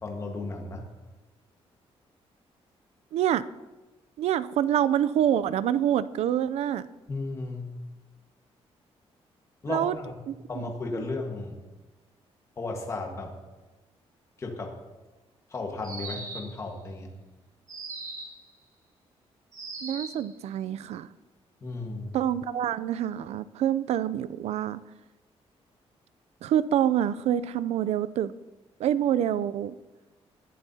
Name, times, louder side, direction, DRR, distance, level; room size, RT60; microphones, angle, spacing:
voice 1, 0.0-0.8 7.1-7.7 9.6-10.1 10.5-11.6 12.6-13.3 14.4-14.7 15.5-17.1 21.6-22.2, left 3 dB, 25° left, 1 dB, 1.5 m, -34 dB
voice 2, 3.1-3.4 4.2-6.8 9.7-10.0 10.3-10.6 11.0-11.1 19.8-21.1 22.1-24.8 26.4-28.3 28.8-29.8, right 10 dB, 80° right, 16 dB, 0.5 m, -26 dB
sound 1, 15.8-16.6 17.7-18.4 19.5-20.3, right 3 dB, 35° right, 2.2 m, -39 dB
21.0 x 11.5 x 2.8 m, 1.1 s
wide cardioid pair, 170°, 11 cm